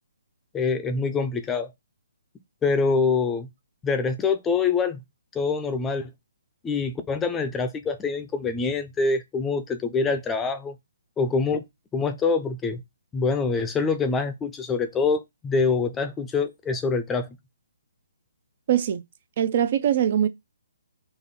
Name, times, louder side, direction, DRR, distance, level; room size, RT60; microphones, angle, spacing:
voice 1, 0.5-1.7 2.6-3.5 3.8-5.0 5.3-6.1 6.6-10.8 11.2-11.6 11.9-12.8 13.1-17.3, left 4 dB, 15° left, 0.5 m, -25 dB
voice 2, 18.7-19.0 19.4-20.3, right 10 dB, 45° right, 0.5 m, -22 dB
3.9 x 2.9 x 4.2 m
hypercardioid pair, 145°, 0 cm